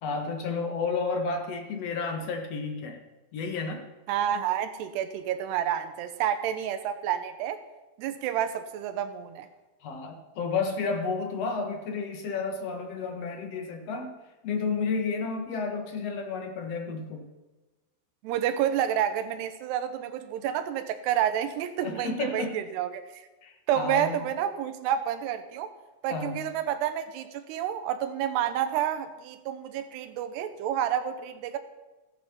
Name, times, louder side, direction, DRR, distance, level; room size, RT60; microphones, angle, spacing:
voice 1, 0.0-3.0 3.3-3.9 9.8-14.1 14.4-17.3 21.8-22.6 23.4-24.2 26.1-26.5, left 4 dB, 50° left, 4 dB, 2.1 m, -31 dB
voice 2, 4.1-7.6 8.0-9.5 18.2-23.0 23.7-25.7 26.0-31.6, right 10 dB, 80° right, 9 dB, 3.1 m, -29 dB
14.5 x 12.0 x 7.2 m, 1.1 s
omnidirectional pair, 4.7 m